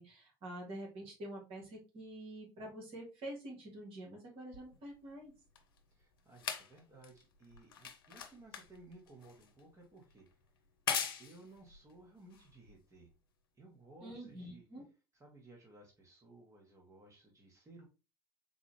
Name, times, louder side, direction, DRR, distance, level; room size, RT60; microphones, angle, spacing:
voice 1, 0.0-5.3 14.0-14.8, right 1 dB, 55° right, -1 dB, 1.9 m, -47 dB
sound 1, 4.5-13.1 14.0-14.1, left 7 dB, 75° left, 0.6 m, -43 dB
voice 2, 5.9-10.3 11.2-13.1 13.5-14.6 15.2-17.8, right 2 dB, 25° right, -1 dB, 1.3 m, -58 dB
4.0 x 2.5 x 3.2 m, 0.30 s
hypercardioid pair, 65°, 12 cm